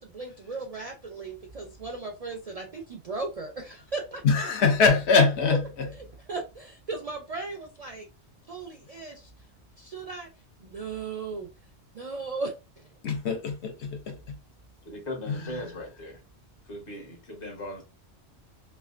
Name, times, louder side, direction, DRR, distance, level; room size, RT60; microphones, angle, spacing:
voice 1, 0.0-4.2 6.3-8.1 8.5-9.3 9.8-10.3 10.6-11.5 11.9-12.8, right 3 dB, 55° right, 0.4 m, -36 dB
voice 2, 4.2-5.9 13.0-14.4 15.3-15.6, left 4 dB, 70° left, 1.0 m, -23 dB
voice 3, 14.8-16.2 16.6-17.8, left 1 dB, 50° left, 1.2 m, -38 dB
3.3 x 2.4 x 2.4 m
omnidirectional pair, 1.2 m